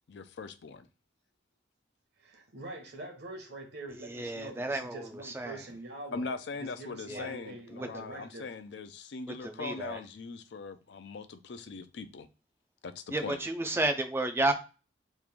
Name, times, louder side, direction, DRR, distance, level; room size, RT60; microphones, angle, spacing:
voice 1, 0.1-0.9 6.1-12.3 12.8-13.4, left 4 dB, 65° left, 0.4 m, -41 dB
voice 2, 2.2-8.5, right 2 dB, 60° right, 0.9 m, -44 dB
voice 3, 4.0-5.6 7.1-7.3 7.7-7.9 9.4-10.0 13.1-14.5, right 2 dB, 15° right, 0.3 m, -32 dB
3.1 x 2.5 x 3.4 m
head